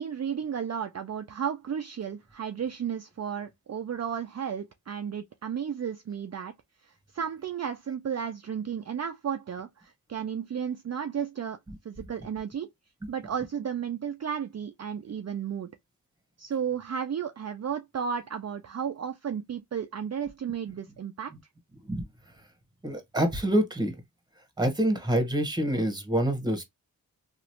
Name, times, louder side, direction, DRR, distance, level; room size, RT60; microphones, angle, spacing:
voice 1, 0.0-6.5 6.8-11.6 11.8-12.7 13.1-15.7 16.4-21.3, right 8 dB, 45° right, 0.5 m, -33 dB
voice 2, 22.8-23.9 24.6-26.6, right 1 dB, 10° right, 1.3 m, -26 dB
3.0 x 2.5 x 2.9 m
cardioid pair, 45°, 38 cm